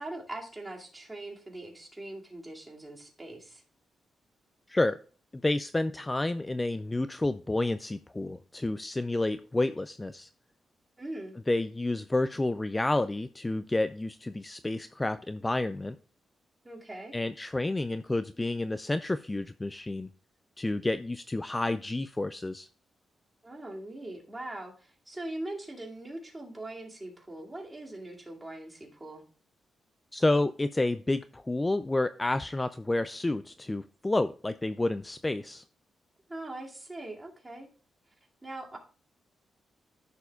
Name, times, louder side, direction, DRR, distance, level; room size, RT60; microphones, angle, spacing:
voice 1, 0.0-3.6 11.0-11.4 16.6-17.2 23.4-29.2 36.3-37.7 38.4-38.8, right 1 dB, 15° right, -2 dB, 2.3 m, -41 dB
voice 2, 4.7-5.0 5.4-10.3 11.5-16.0 17.1-20.1 20.6-22.7 30.1-35.6, left 2 dB, 15° left, 12 dB, 0.3 m, -30 dB
14.0 x 6.8 x 2.4 m, 0.40 s
cardioid pair, 130°, 0 cm